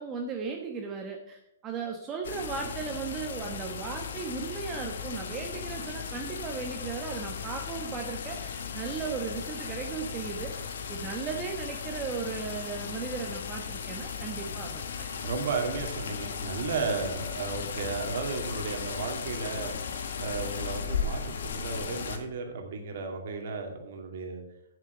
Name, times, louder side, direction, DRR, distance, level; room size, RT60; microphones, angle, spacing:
voice 1, 0.0-15.2, right 5 dB, 20° right, 2 dB, 1.1 m, -36 dB
sound 1, 2.2-22.2, left 6 dB, 75° left, 1.5 m, -36 dB
voice 2, 15.2-19.7 20.2-24.4, right 4 dB, 60° right, 3 dB, 2.2 m, -34 dB
8.1 x 7.3 x 6.6 m, 0.79 s
hypercardioid pair, 155°, 0 cm